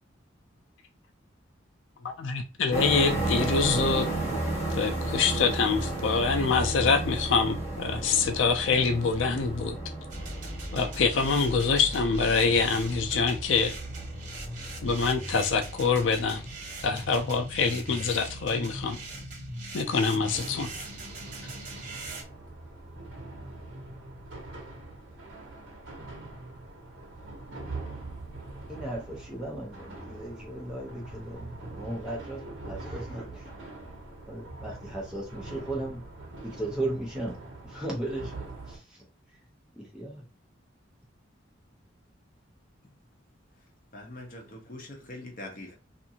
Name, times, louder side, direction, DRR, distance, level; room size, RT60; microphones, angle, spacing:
voice 1, 2.0-4.1 4.7-9.8 10.7-13.8 14.8-16.4 16.8-19.0 19.7-20.7 21.4-21.5, left 5 dB, 70° left, 0.4 m, -25 dB
sound 1, 2.7-19.2, right 2 dB, 15° left, 1.4 m, -34 dB
sound 2, 10.1-22.2, right 1 dB, 40° right, 0.9 m, -39 dB
sound 3, 20.1-38.8, right 2 dB, 80° right, 0.9 m, -43 dB
voice 2, 28.7-33.4 34.3-36.0 36.4-37.4 37.7-38.3 38.7-38.8 39.8-40.2, right 1 dB, 5° right, 0.8 m, -36 dB
voice 3, 43.9-45.7, left 1 dB, 45° left, 0.8 m, -42 dB
2.6 x 2.5 x 2.7 m
head